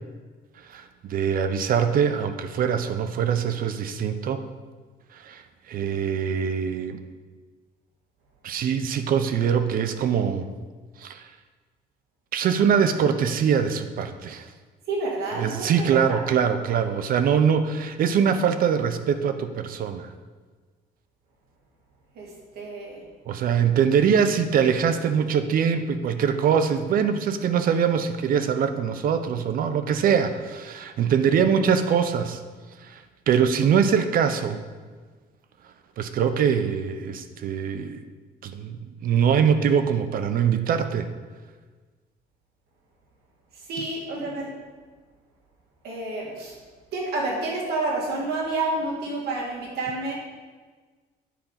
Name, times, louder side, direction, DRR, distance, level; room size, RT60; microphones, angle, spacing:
voice 1, 0.7-4.4 5.1-7.0 8.4-10.5 11.0-11.2 12.3-14.5 15.4-20.1 23.3-32.4 32.8-33.0 33.3-34.6 36.0-38.0 38.4-41.1, right 7 dB, 55° right, 10 dB, 0.7 m, -23 dB
voice 2, 14.9-16.2 22.2-23.0 43.5-44.5 45.8-46.5 46.9-50.1, right 2 dB, 75° right, -2 dB, 2.5 m, -29 dB
8.5 x 5.0 x 5.8 m, 1.4 s
cardioid pair, 110°, 17 cm